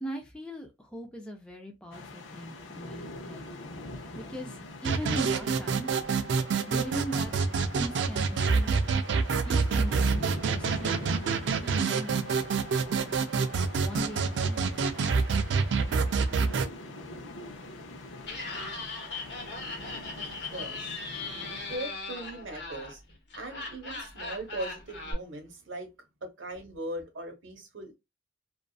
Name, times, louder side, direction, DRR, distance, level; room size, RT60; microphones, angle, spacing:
voice 1, 0.0-3.5 4.1-6.0 6.7-8.9 9.3-11.0 11.6-12.3 13.6-14.7, equal, 5° left, 0.4 m, -40 dB
sound 1, 1.9-21.8, left 2 dB, 90° left, 0.6 m, -44 dB
sound 2, 4.8-16.7, right 5 dB, 65° right, 0.3 m, -27 dB
Laughter, 18.2-25.1, left 3 dB, 60° left, 0.9 m, -39 dB
voice 2, 20.2-21.0 21.7-23.0 23.3-25.9 26.2-28.0, right 1 dB, 85° right, 0.9 m, -39 dB
2.4 x 2.4 x 2.2 m
head